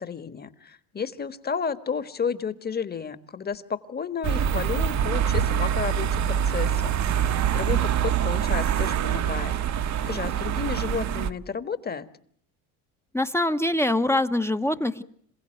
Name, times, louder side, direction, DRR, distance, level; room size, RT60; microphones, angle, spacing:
voice 1, 0.0-12.0, left 6 dB, 25° left, 12 dB, 1.5 m, -32 dB
sound 1, 4.2-11.3, right 9 dB, 45° right, 1.2 m, -25 dB
voice 2, 13.1-15.0, left 1 dB, 5° left, 9 dB, 1.0 m, -24 dB
27.5 x 16.0 x 9.0 m, 0.64 s
supercardioid pair, 105°, 40 cm